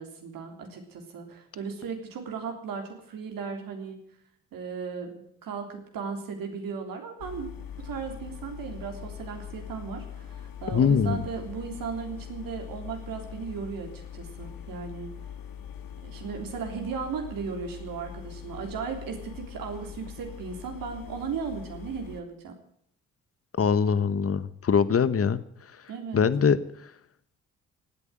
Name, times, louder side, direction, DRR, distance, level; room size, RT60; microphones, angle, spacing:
voice 1, 0.0-4.0 4.5-7.5 7.8-15.1 16.0-22.5 25.9-26.3, right 5 dB, 70° right, 3 dB, 3.5 m, -36 dB
sound 1, 7.2-22.2, left 9 dB, 70° left, 1.8 m, -42 dB
voice 2, 10.7-11.3 23.6-25.4 26.1-26.6, left 6 dB, 40° left, 16 dB, 1.2 m, -22 dB
18.0 x 8.4 x 9.0 m, 0.68 s
hypercardioid pair, 50°, 35 cm